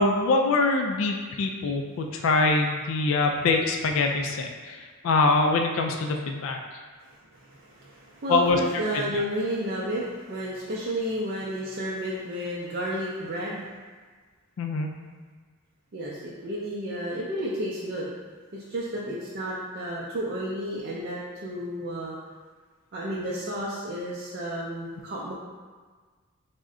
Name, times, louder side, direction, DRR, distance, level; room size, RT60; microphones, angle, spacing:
voice 1, 0.0-6.6 8.3-8.6 9.1-9.2 14.6-14.9, left 3 dB, 70° left, 3 dB, 0.3 m, -24 dB
voice 2, 7.0-13.7 15.9-18.1 18.5-22.2 22.9-25.3, equal, 50° right, -6 dB, 0.4 m, -32 dB
3.5 x 2.1 x 3.6 m, 1.5 s
head